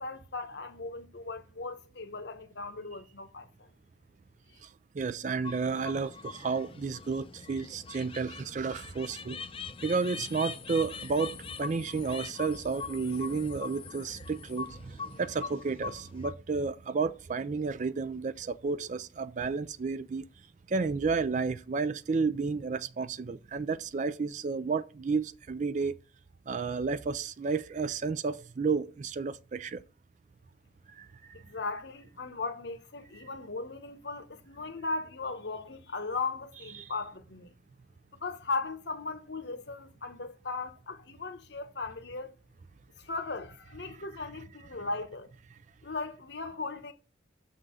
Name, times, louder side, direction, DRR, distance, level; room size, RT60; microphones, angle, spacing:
voice 1, 0.0-3.7 31.3-37.5 38.1-42.3 43.0-45.3 45.8-46.9, left 3 dB, 60° left, 0.9 m, -37 dB
voice 2, 4.9-9.4 9.8-20.2 20.7-26.0 26.5-29.8 31.0-31.4 36.8-36.9 43.9-44.0, right 4 dB, 40° right, 0.4 m, -32 dB
sound 1, 5.4-16.3, left 5 dB, 30° left, 0.5 m, -42 dB
6.7 x 3.8 x 6.2 m
head